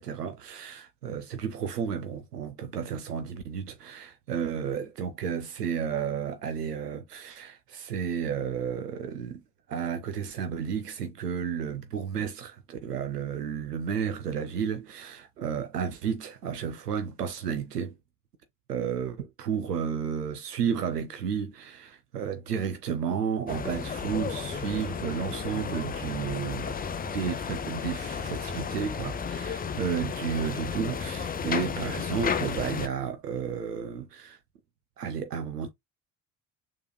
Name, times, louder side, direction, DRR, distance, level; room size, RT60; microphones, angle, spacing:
voice 1, 0.0-9.4 9.7-17.9 18.7-26.8 27.1-34.4 35.0-35.7, right 7 dB, 90° right, 0.6 m, -32 dB
sound 1, 23.5-32.9, left 6 dB, 20° left, 0.5 m, -33 dB
6.6 x 3.1 x 2.2 m
figure-of-eight pair, 55°, 46 cm